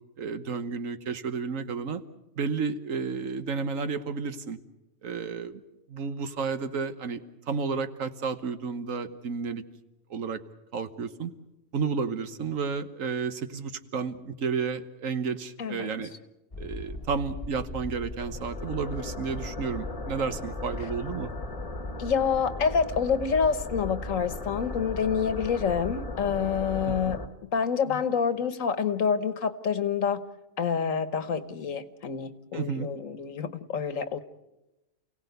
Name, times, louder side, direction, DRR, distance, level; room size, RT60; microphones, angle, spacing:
voice 1, 0.2-2.0 2.4-4.6 5.0-5.6 5.9-9.6 10.1-10.4 10.7-11.3 11.7-16.1 16.6-21.3 26.9-27.1 32.5-32.9, right 5 dB, 80° right, 10 dB, 1.5 m, -32 dB
sound 1, 16.5-27.3, left 2 dB, 30° left, 1.3 m, -37 dB
voice 2, 22.0-30.2 30.6-34.2, left 6 dB, 75° left, 12 dB, 1.6 m, -27 dB
29.0 x 17.5 x 8.1 m, 0.97 s
omnidirectional pair, 1.4 m